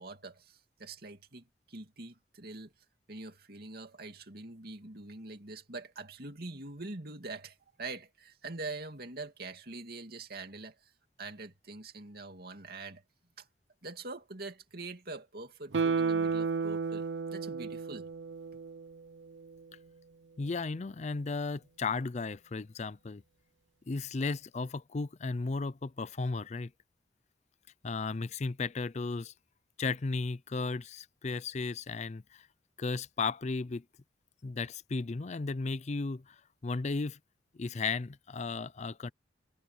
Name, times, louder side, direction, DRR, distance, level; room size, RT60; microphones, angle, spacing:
voice 1, 0.0-2.7 3.1-10.8 11.2-13.0 13.4-13.5 13.8-17.1 17.3-18.1, right 3 dB, 55° right, 2.6 m, -44 dB
Guitar, 15.7-19.0 19.4-19.5, right 5 dB, 80° right, 0.6 m, -32 dB
voice 2, 20.4-23.2 23.9-26.7 27.8-29.3 29.8-32.5 32.8-33.8 34.4-36.4 36.6-37.2 37.5-39.1, left 4 dB, 40° left, 0.5 m, -35 dB
head